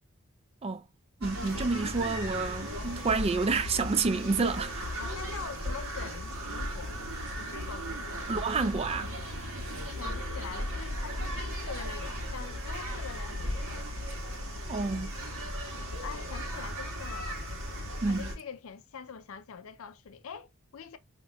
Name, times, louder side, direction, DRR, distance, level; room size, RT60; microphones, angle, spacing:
voice 1, 1.2-4.8 8.3-9.2 14.7-15.1 18.0-18.3, right 4 dB, 30° right, 0.4 m, -29 dB
sound 1, 1.2-18.3, equal, 80° right, 1.4 m, -36 dB
voice 2, 4.8-6.9 7.4-8.6 9.9-13.9 16.0-17.4 18.1-21.0, left 6 dB, 70° left, 0.5 m, -44 dB
5.5 x 2.9 x 2.2 m
head